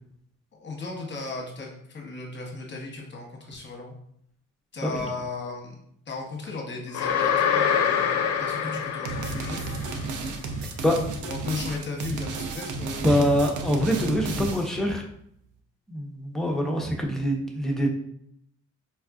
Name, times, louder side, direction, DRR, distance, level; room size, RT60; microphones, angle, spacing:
voice 1, 0.5-3.9 4.7-5.8 6.1-10.3 11.2-13.3 14.6-14.8, left 3 dB, 35° left, 0 dB, 0.9 m, -36 dB
sound 1, 6.9-10.0, left 7 dB, 65° left, 0.5 m, -25 dB
sound 2, 9.0-14.8, right 3 dB, 85° right, 0.5 m, -33 dB
voice 2, 13.0-15.0 15.9-17.9, equal, ahead, 0 dB, 0.6 m, -24 dB
4.3 x 2.4 x 2.3 m, 0.71 s
cardioid pair, 90°, 30 cm